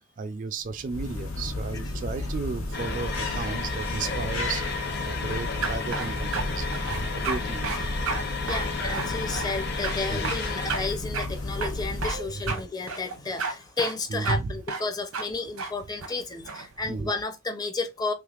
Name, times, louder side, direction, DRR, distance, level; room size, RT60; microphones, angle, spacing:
voice 1, 0.2-4.6 5.0-7.9 10.1-10.7 12.1-12.6 14.1-14.5 16.8-17.1, right 4 dB, 40° right, 0.3 m, -34 dB
sound 1, 0.6-12.5, left 2 dB, 85° left, 1.1 m, -33 dB
sound 2, 2.7-10.9, left 4 dB, 50° left, 0.8 m, -33 dB
sound 3, 5.6-6.4 6.7-7.4 7.6-7.8 8.1-8.2 8.5-9.6 9.8-10.0 10.2-10.4 10.7-10.8 11.1-11.3 11.6-12.2 12.5-12.6 12.9-13.5 13.8-14.0 14.2-14.4 14.7-14.8 15.1-15.3 15.6-15.7 16.0-16.7, right 4 dB, 80° right, 0.9 m, -31 dB
voice 2, 7.7-8.0 8.5-18.1, left 3 dB, 20° left, 0.5 m, -32 dB
3.3 x 3.2 x 2.3 m
head